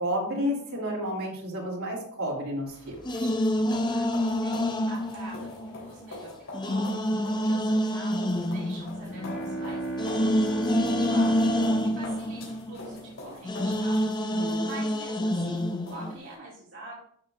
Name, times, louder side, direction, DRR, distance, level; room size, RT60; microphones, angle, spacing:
voice 1, 0.0-3.3 14.2-14.7, equal, 75° right, -3 dB, 3.1 m, -31 dB
sound 1, 2.7-16.4, left 2 dB, 60° left, 3.7 m, -45 dB
sound 2, 3.0-6.1 6.5-13.1 13.4-16.2, equal, 20° left, 0.6 m, -27 dB
voice 2, 3.9-14.3 14.6-16.9, right 2 dB, 60° right, -6 dB, 2.5 m, -46 dB
Bowed string instrument, 9.0-13.6, right 2 dB, 45° left, 1.3 m, -34 dB
11.5 x 6.8 x 2.5 m, 0.63 s
head